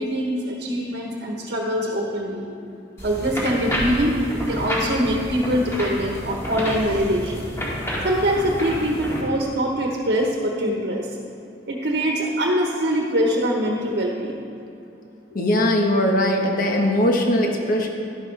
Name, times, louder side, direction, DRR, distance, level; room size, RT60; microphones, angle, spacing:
voice 1, 0.0-2.5 3.0-7.5 8.0-11.1 11.7-14.4, equal, 60° right, 0 dB, 1.1 m, -23 dB
sound 1, 3.0-9.2, equal, 15° left, 2.1 m, -29 dB
voice 2, 15.3-17.9, left 1 dB, 50° left, 1 dB, 1.3 m, -20 dB
12.0 x 10.5 x 3.4 m, 2.7 s
head